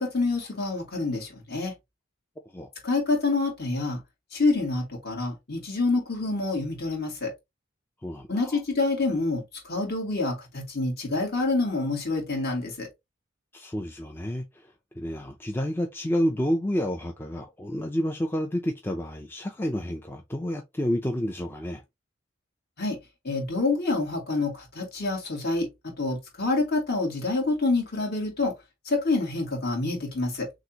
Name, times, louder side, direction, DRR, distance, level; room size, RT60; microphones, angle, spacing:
voice 1, 0.0-1.7 2.8-4.0 4.3-7.3 8.3-12.9 22.8-23.0 23.2-25.7 26.0-28.5 28.9-30.5, left 3 dB, 50° left, 2.2 m, -27 dB
voice 2, 8.0-8.6 13.5-21.8, equal, 10° left, 0.5 m, -30 dB
6.2 x 2.5 x 2.9 m
head